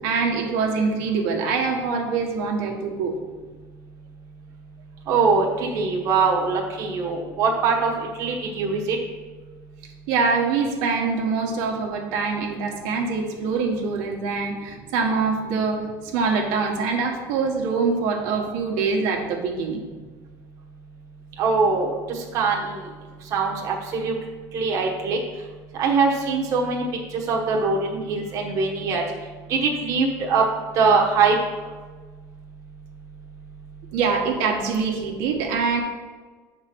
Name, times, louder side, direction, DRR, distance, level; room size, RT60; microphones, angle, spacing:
voice 1, 0.0-3.2 10.1-19.8 33.9-35.8, right 4 dB, 80° right, 1 dB, 1.4 m, -24 dB
voice 2, 5.1-7.9 8.2-9.0 21.4-22.8 23.3-24.1 24.5-25.2 25.8-26.8 27.3-29.0 29.5-30.4 30.8-31.4, right 4 dB, 40° right, -1 dB, 1.1 m, -22 dB
8.1 x 4.4 x 6.1 m, 1.4 s
cardioid pair, 175°, 8 cm